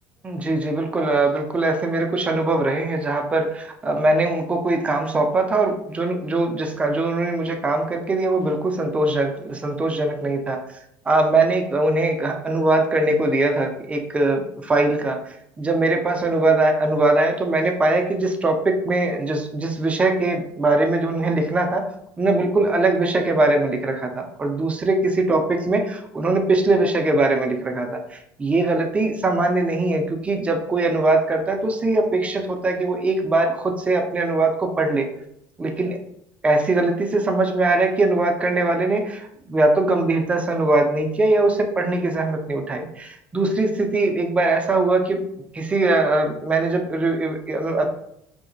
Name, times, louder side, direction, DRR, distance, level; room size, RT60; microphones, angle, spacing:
voice 1, 0.2-10.6 11.1-21.9 22.2-35.1 35.6-36.0 36.4-45.2 45.5-47.9, right 2 dB, 15° right, 4 dB, 0.4 m, -21 dB
2.8 x 2.0 x 2.6 m, 0.75 s
supercardioid pair, 115°, 7 cm